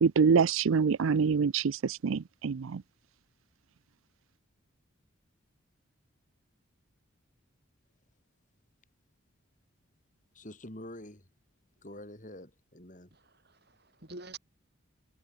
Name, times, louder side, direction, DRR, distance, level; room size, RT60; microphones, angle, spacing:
voice 1, 0.0-2.8, right 5 dB, 80° right, 0.5 m, -25 dB
voice 2, 10.3-11.3 11.8-13.1, left 1 dB, 40° left, 4.3 m, -46 dB
voice 3, 13.1-14.4, right 3 dB, 50° right, 6.7 m, -48 dB
head